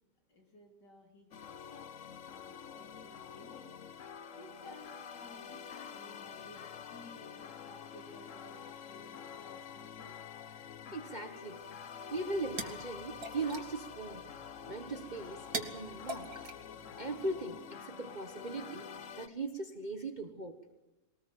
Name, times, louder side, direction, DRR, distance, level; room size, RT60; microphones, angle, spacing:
voice 1, 0.3-1.9 2.3-4.1 4.3-10.2, left 1 dB, 80° left, 3 dB, 3.9 m, -56 dB
sound 1, 1.3-19.3, left 7 dB, 55° left, 1.1 m, -47 dB
voice 2, 10.9-11.6 12.1-14.2 14.7-16.4 17.0-18.9 19.2-20.6, right 2 dB, 30° right, 6 dB, 1.2 m, -39 dB
sound 2, 12.1-17.4, right 3 dB, 60° right, 2.3 m, -45 dB
21.5 x 19.0 x 7.7 m, 1.0 s
omnidirectional pair, 1.8 m